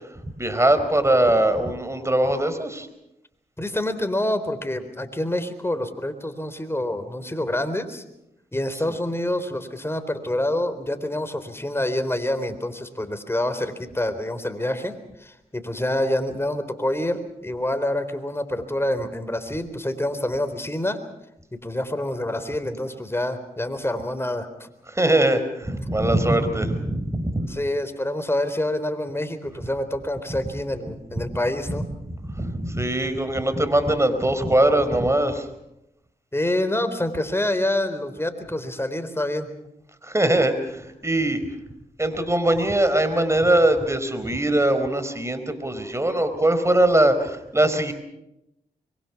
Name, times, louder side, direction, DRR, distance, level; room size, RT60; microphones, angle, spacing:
voice 1, 0.4-2.9 8.9-9.0 24.9-27.5 30.3-30.5 31.1-31.3 31.7-31.9 32.2-35.5 40.0-41.4 42.0-47.9, right 1 dB, 15° right, 10 dB, 4.5 m, -21 dB
voice 2, 3.6-8.0 8.5-21.0 21.5-24.7 27.5-31.8 36.3-39.5, left 1 dB, 15° left, 9 dB, 3.9 m, -27 dB
25.0 x 23.0 x 6.0 m, 0.88 s
supercardioid pair, 45°, 16 cm